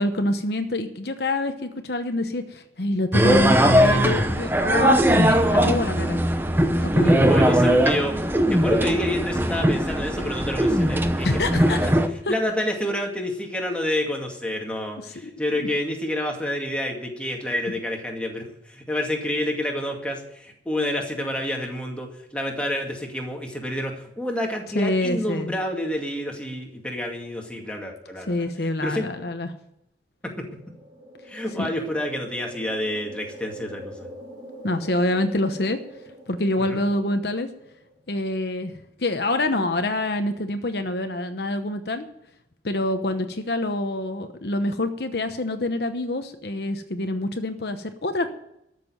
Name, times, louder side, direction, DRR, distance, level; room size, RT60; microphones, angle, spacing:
voice 1, 0.0-6.2 6.8-7.4 11.2-12.0 12.3-12.4 15.0-15.3 24.7-25.5 28.3-29.5 31.6-31.7 34.6-35.8 36.3-37.5 38.1-38.7 39.0-42.1 42.6-48.3, left 1 dB, 65° left, 8 dB, 1.0 m, -26 dB
sound 1, 3.1-12.1, right 1 dB, 10° right, 0.9 m, -20 dB
voice 2, 7.0-8.2 8.5-11.3 11.6-11.9 12.3-28.5 28.8-29.0 30.2-30.5 31.3-34.1 36.7-36.8, left 1 dB, 5° left, 1 dB, 2.2 m, -28 dB
sound 2, 30.4-38.0, equal, 25° right, 3.1 m, -44 dB
13.0 x 6.8 x 9.4 m, 0.78 s
head